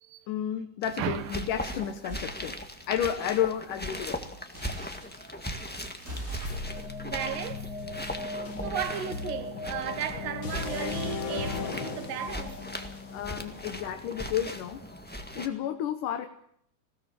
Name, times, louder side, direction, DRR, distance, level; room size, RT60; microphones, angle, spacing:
voice 1, 0.3-2.6 2.9-4.2 10.8-11.0 13.1-14.8 15.4-16.3, left 10 dB, 75° left, 2.6 m, -31 dB
sound 1, 0.8-15.5, left 1 dB, 10° left, 0.6 m, -39 dB
voice 2, 1.0-1.4 7.0-7.7 8.6-12.6, right 10 dB, 85° right, 2.8 m, -35 dB
sound 2, 2.1-2.4 4.5-5.3 6.0-8.6, right 2 dB, 20° right, 5.6 m, -42 dB
sound 3, 6.4-14.3, left 4 dB, 45° left, 1.8 m, -37 dB
20.5 x 17.0 x 7.7 m
omnidirectional pair, 3.8 m